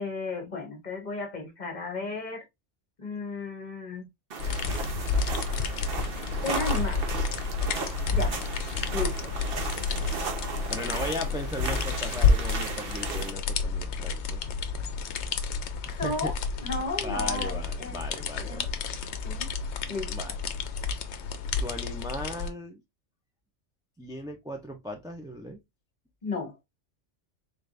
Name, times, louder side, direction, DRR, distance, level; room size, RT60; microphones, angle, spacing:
voice 1, 0.0-2.4 3.0-4.1 6.4-7.1 8.1-8.4 8.9-9.3 16.0-16.3 16.6-18.0 18.4-18.7 19.2-19.5 19.9-20.2 26.2-26.6, left 3 dB, 40° left, 1.2 m, -34 dB
sound 1, 4.3-13.3, right 5 dB, 55° right, 0.9 m, -36 dB
sound 2, 4.4-22.5, left 5 dB, 70° left, 0.9 m, -30 dB
voice 2, 10.7-14.4 15.9-16.3 17.0-18.7 20.1-20.3 21.6-22.8 24.0-25.6, equal, 5° right, 0.4 m, -37 dB
3.8 x 3.4 x 2.5 m
omnidirectional pair, 1.3 m